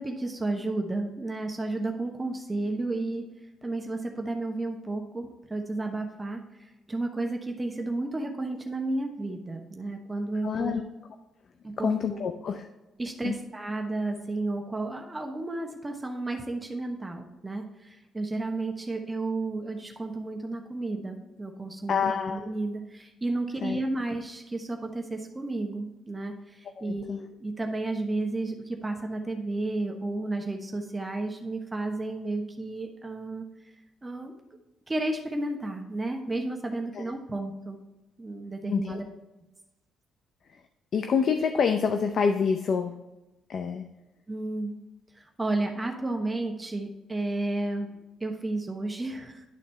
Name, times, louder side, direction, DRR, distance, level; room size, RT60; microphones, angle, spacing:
voice 1, 0.0-3.2 3.6-6.4 6.9-10.7 11.6-12.2 13.0-33.4 34.0-34.3 34.9-37.8 38.2-39.0 44.3-44.7 45.4-47.9 48.2-49.4, right 2 dB, 20° right, 3 dB, 1.1 m, -32 dB
voice 2, 10.4-10.8 11.8-12.6 13.2-13.4 21.9-22.5 23.6-23.8 26.8-27.2 36.9-37.1 38.7-39.0 40.9-42.9 43.5-43.8, left 6 dB, 55° left, 7 dB, 0.6 m, -27 dB
11.0 x 4.1 x 4.4 m, 1.0 s
cardioid pair, 90°, 0 cm